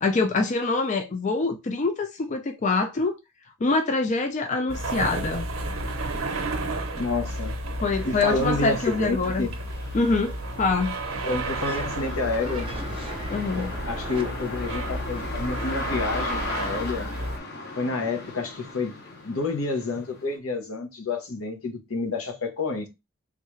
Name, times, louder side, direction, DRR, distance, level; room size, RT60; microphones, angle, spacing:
voice 1, 0.0-3.2 3.6-5.5 7.8-9.5 9.9-10.3 10.6-11.0 13.3-13.7, left 3 dB, 35° left, 0.3 m, -25 dB
sound 1, 4.7-17.4, right 1 dB, 70° right, 0.7 m, -32 dB
voice 2, 6.9-7.6 8.0-9.5 11.2-12.7 13.5-17.1 17.8-18.9 19.2-22.9, left 3 dB, 80° left, 0.9 m, -29 dB
sound 2, 6.9-7.0 7.5-20.4, left 2 dB, 50° left, 0.8 m, -37 dB
sound 3, 11.3-15.3, right 2 dB, 25° right, 0.5 m, -38 dB
3.6 x 2.3 x 3.0 m
head